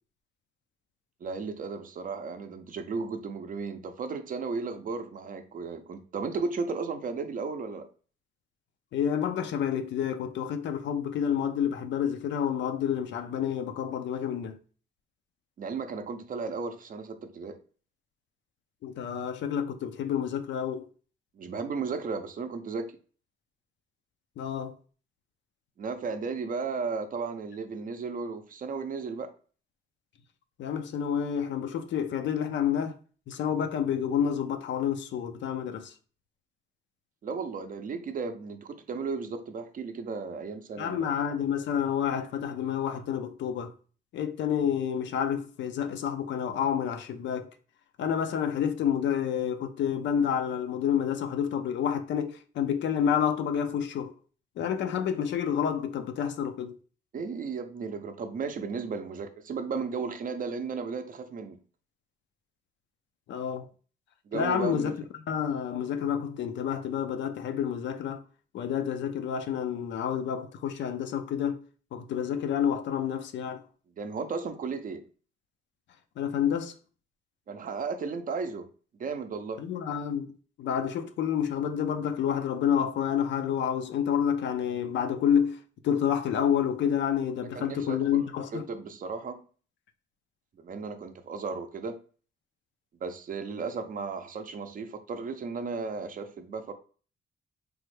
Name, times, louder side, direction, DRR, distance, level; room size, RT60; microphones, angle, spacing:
voice 1, 1.2-7.9 15.6-17.6 21.4-22.9 25.8-29.3 37.2-41.1 57.1-61.6 64.3-65.0 74.0-75.0 77.5-78.7 79.0-79.6 87.5-88.3 88.5-89.4 90.6-92.0 93.0-96.7, right 4 dB, 45° right, 0.5 m, -35 dB
voice 2, 8.9-14.6 18.8-20.8 24.4-24.8 30.6-32.9 33.3-35.9 40.8-43.7 44.1-47.5 48.0-54.1 54.6-56.8 63.3-63.7 64.3-64.9 65.3-68.2 68.5-71.6 71.9-73.6 76.2-76.7 79.6-80.3 80.6-85.6 85.8-88.6, left 8 dB, 75° left, 0.4 m, -29 dB
3.3 x 2.1 x 3.1 m
cardioid pair, 85°, 19 cm